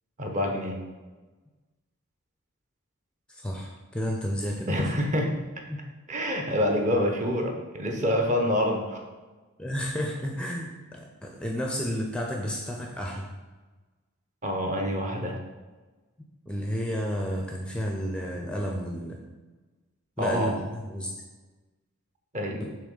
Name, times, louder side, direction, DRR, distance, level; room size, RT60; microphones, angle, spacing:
voice 1, 0.2-0.9 4.7-5.6 6.1-9.0 14.4-15.4 20.2-20.6 22.3-22.7, equal, 35° right, 2 dB, 0.9 m, -27 dB
voice 2, 3.3-4.9 5.7-5.8 9.6-13.3 16.5-19.2 20.2-21.1 22.6-22.7, equal, 5° left, 0 dB, 0.5 m, -31 dB
7.0 x 3.0 x 5.5 m, 1.3 s
head